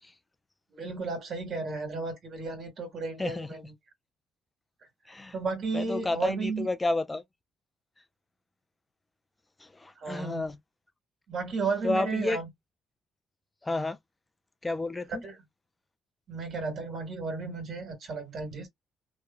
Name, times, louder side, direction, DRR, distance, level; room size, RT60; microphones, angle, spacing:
voice 1, 0.7-3.7 5.3-6.7 10.0-10.4 11.3-12.5 15.2-15.3 16.3-18.7, right 4 dB, 55° right, 1.5 m, -33 dB
voice 2, 3.2-3.5 5.1-5.3 5.7-7.2 9.6-10.6 11.8-12.4 13.6-14.0 14.6-15.2, left 2 dB, 15° left, 0.4 m, -31 dB
2.9 x 2.2 x 2.2 m
cardioid pair, 100°, 0 cm